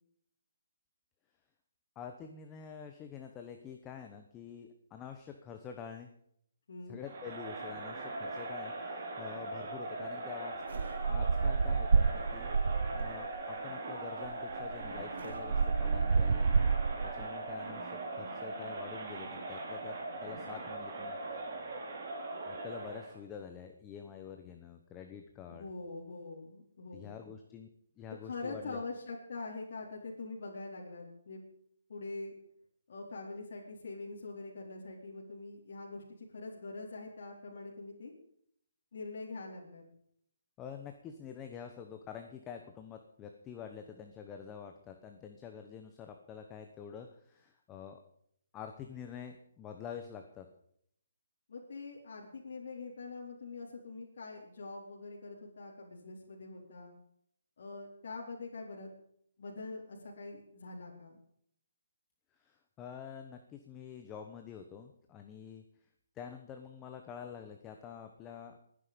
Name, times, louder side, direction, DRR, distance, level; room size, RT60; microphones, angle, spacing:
voice 1, 1.9-6.1 6.9-10.6 11.0-16.5 17.0-20.0 20.2-21.2 22.5-25.7 26.9-27.7 28.0-28.8 40.6-48.0 48.5-50.5 62.4-65.6 66.1-68.6, left 7 dB, 10° left, 5 dB, 1.0 m, -47 dB
voice 2, 6.7-7.0 25.5-27.4 28.2-31.4 31.9-32.3 32.9-38.1 38.9-39.8 51.5-56.9 57.6-58.9 59.4-61.2, left 3 dB, 50° left, -4 dB, 4.0 m, -44 dB
Crowd, 7.0-23.2, right 2 dB, 30° right, 4.2 m, -40 dB
sound 1, 10.7-13.3 14.2-14.3 14.6-17.3, right 5 dB, 65° right, 0.7 m, -29 dB
21.0 x 10.0 x 5.2 m, 0.68 s
hypercardioid pair, 175°, 0 cm